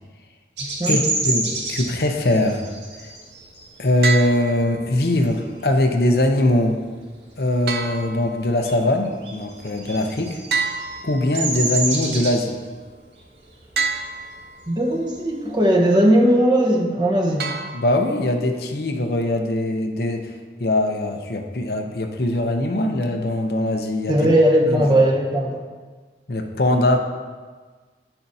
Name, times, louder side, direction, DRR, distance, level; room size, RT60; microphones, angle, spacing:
Bird vocalization bird call bird song, 0.6-5.8 6.2-6.5 6.8-8.1 8.3-15.7, right 3 dB, 85° right, 1.9 m, -29 dB
voice 1, 1.3-2.6 3.0-3.1 3.8-6.8 7.4-10.4 11.0-12.6 17.7-20.3 20.6-24.2 24.7-24.8 26.3-27.0, left 1 dB, 60° left, 4 dB, 0.7 m, -21 dB
sound 1, 4.0-5.0 7.7-8.8 10.5-11.7 13.8-14.7 17.4-18.3, right 4 dB, 60° right, 0.6 m, -28 dB
voice 2, 14.7-17.5 24.1-25.6, right 1 dB, 25° right, -1 dB, 1.1 m, -18 dB
10.0 x 8.7 x 2.7 m, 1.5 s
head